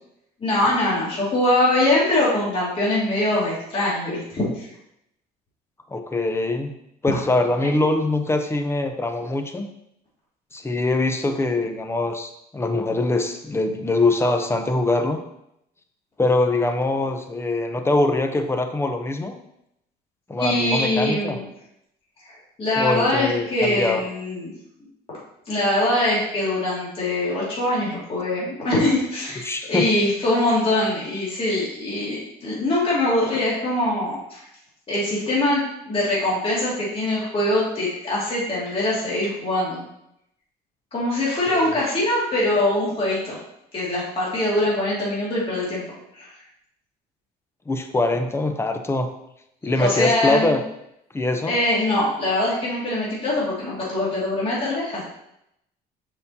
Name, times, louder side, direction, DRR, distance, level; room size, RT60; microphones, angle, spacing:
voice 1, 0.4-4.7 20.4-21.4 22.3-24.5 25.5-34.5 34.9-39.8 40.9-43.4 43.7-45.8 46.1-46.3 49.7-50.5 51.5-55.0, left 1 dB, 35° left, -7 dB, 2.3 m, -23 dB
voice 2, 5.9-6.7 7.0-9.7 10.5-15.2 16.2-19.3 20.3-21.4 22.8-24.0 29.4-29.9 41.5-41.8 47.7-49.1 49.6-50.6 51.1-51.6, left 2 dB, 15° left, 6 dB, 0.7 m, -23 dB
6.7 x 5.4 x 2.8 m, 0.80 s
cardioid pair, 110°, 17 cm